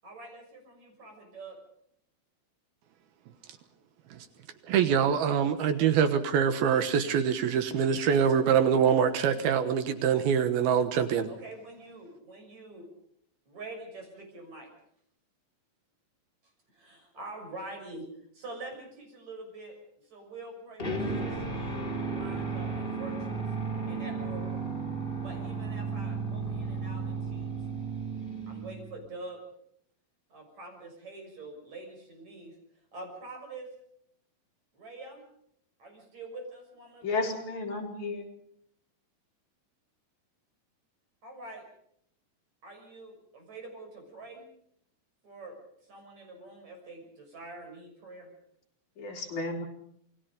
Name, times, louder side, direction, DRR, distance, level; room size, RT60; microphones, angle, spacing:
voice 1, 0.0-1.6 11.3-12.9 13.5-14.7 16.7-18.1 18.3-23.5 23.8-24.5 25.2-27.5 28.5-29.4 30.3-32.6 32.9-33.7 34.7-35.2 35.8-37.3 41.2-41.7 42.6-44.5 45.2-48.3, right 2 dB, 45° right, 3 dB, 7.6 m, -45 dB
voice 2, 4.7-11.3, right 7 dB, 80° right, 10 dB, 3.1 m, -24 dB
sound 1, 20.8-29.0, right 4 dB, 15° left, 4.3 m, -34 dB
voice 3, 37.0-38.3 49.0-49.7, left 3 dB, 50° left, 0 dB, 4.9 m, -33 dB
28.0 x 21.5 x 5.2 m, 0.71 s
omnidirectional pair, 4.4 m